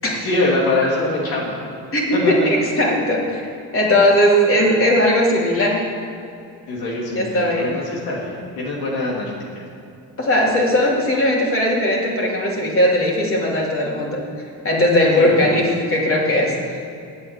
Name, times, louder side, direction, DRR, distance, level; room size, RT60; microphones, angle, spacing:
voice 1, 0.2-1.6 6.7-9.6 15.2-15.5, left 2 dB, 80° left, -4 dB, 2.8 m, -23 dB
voice 2, 1.9-3.5 3.7-5.8 7.1-7.7 10.2-14.2 14.6-16.9, left 1 dB, 35° left, -2 dB, 3.3 m, -18 dB
9.3 x 8.6 x 9.0 m, 2.6 s
cardioid pair, 120°, 36 cm